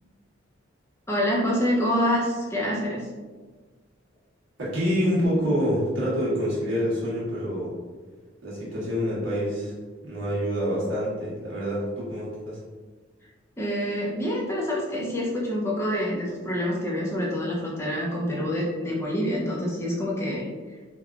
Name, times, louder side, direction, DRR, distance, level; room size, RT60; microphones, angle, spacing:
voice 1, 1.1-3.1 13.6-20.5, equal, 15° left, -4 dB, 0.5 m, -26 dB
voice 2, 4.6-7.8 8.4-9.7 10.0-12.6, equal, 75° right, -8 dB, 1.1 m, -26 dB
3.3 x 2.3 x 2.3 m, 1.4 s
head